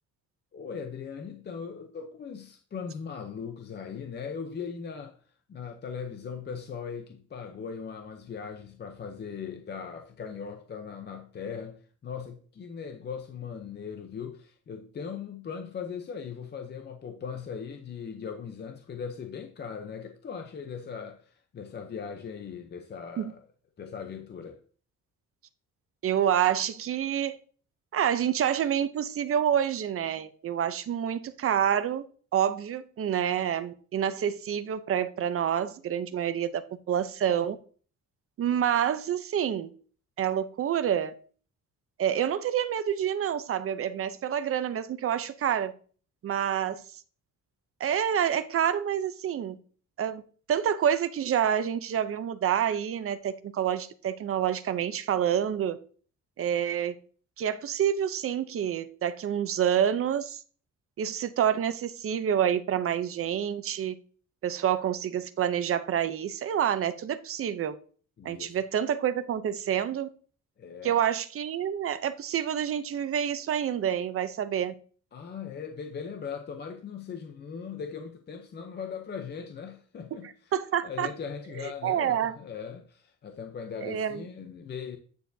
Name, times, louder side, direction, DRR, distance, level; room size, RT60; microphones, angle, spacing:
voice 1, 0.5-5.1 5.5-23.4 23.8-24.6 68.2-68.6 70.6-70.9 75.1-80.3 80.8-85.0, left 6 dB, 30° left, 0.6 m, -39 dB
voice 2, 26.0-27.4 27.9-32.1 32.3-37.6 38.4-39.7 40.2-41.1 42.0-45.7 46.2-47.0 47.8-49.6 50.0-50.2 50.5-55.8 56.4-56.9 57.4-60.4 61.0-64.0 64.4-67.8 68.2-70.1 70.8-74.7 80.1-81.1 81.6-82.4 83.8-84.3, right 9 dB, 40° right, 0.6 m, -28 dB
9.3 x 6.8 x 2.7 m
cardioid pair, 175°, 33 cm